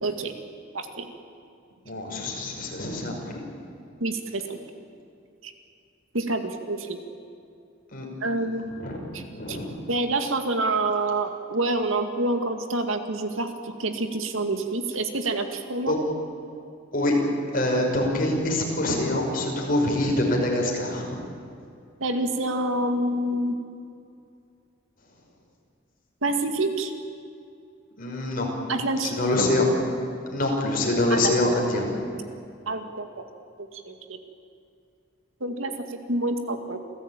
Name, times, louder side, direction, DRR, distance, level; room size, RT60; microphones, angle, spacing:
voice 1, 0.0-0.4 0.7-1.1 4.0-4.6 5.4-5.5 6.1-7.0 8.2-8.8 9.1-9.6 9.9-16.0 22.0-23.6 26.2-26.9 28.7-29.2 31.1-31.2 32.7-33.1 33.7-34.2 35.4-36.8, right 2 dB, 85° right, 6 dB, 2.2 m, -27 dB
voice 2, 1.9-3.4 7.9-8.1 8.8-9.0 9.3-9.7 15.9-16.0 16.9-17.3 17.5-21.0 28.0-28.5 29.0-29.7 30.3-31.9, left 1 dB, 45° left, 0 dB, 5.6 m, -25 dB
28.0 x 16.5 x 9.1 m, 2.6 s
head